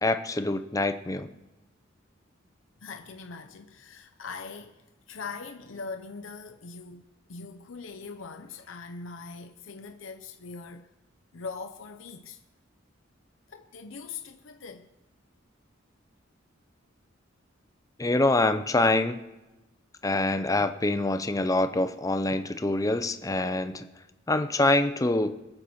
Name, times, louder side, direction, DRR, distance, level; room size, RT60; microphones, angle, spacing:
voice 1, 0.0-1.3 18.0-19.2 20.0-23.9 24.3-25.4, left 2 dB, 15° left, 0.6 m, -25 dB
voice 2, 2.8-4.8 5.1-10.9 11.3-12.4 13.5-14.9, left 4 dB, 80° left, 0.7 m, -41 dB
23.0 x 7.8 x 4.3 m
head